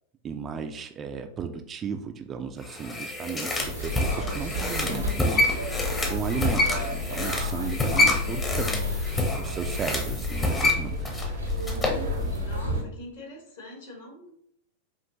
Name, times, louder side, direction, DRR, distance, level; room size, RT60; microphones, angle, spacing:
voice 1, 0.2-11.0, right 6 dB, 25° right, 6 dB, 0.4 m, -35 dB
sound 1, 2.6-12.0 12.4-12.5, left 2 dB, 15° left, 0.8 m, -27 dB
sound 2, 3.6-12.8, left 1 dB, 80° right, 0.9 m, -31 dB
voice 2, 12.4-14.3, left 1 dB, 60° left, -1 dB, 1.7 m, -43 dB
5.3 x 2.5 x 2.9 m, 0.69 s
figure-of-eight pair, 90°, 0 cm